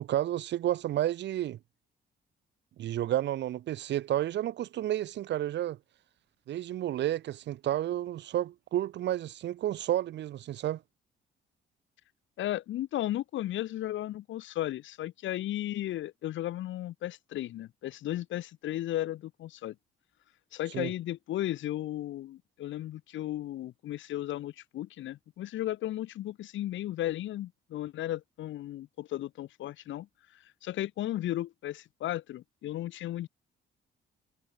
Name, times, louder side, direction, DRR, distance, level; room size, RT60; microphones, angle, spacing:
voice 1, 0.0-1.6 2.8-5.8 6.5-10.8 20.7-20.9, right 12 dB, 65° right, 0.6 m, -31 dB
voice 2, 12.4-19.8 20.5-30.1 30.3-33.3, left 13 dB, 75° left, 0.9 m, -35 dB
cardioid pair, 90°, 20 cm